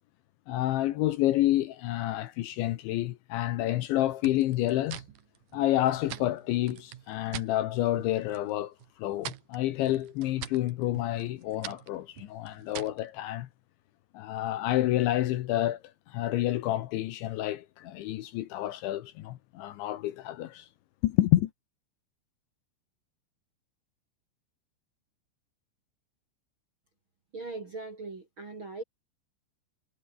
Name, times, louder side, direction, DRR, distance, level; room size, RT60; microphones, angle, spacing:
voice 1, 0.5-5.0 5.5-8.7 9.0-13.5 14.1-15.8 16.1-20.7 21.0-21.5, left 14 dB, 75° left, 3.1 m, -29 dB
sound 1, 4.2-7.5 7.9-8.5 8.8-13.1, right 13 dB, 85° right, 1.9 m, -44 dB
voice 2, 27.3-28.8, right 3 dB, 35° right, 2.2 m, -40 dB
omnidirectional pair, 6.0 m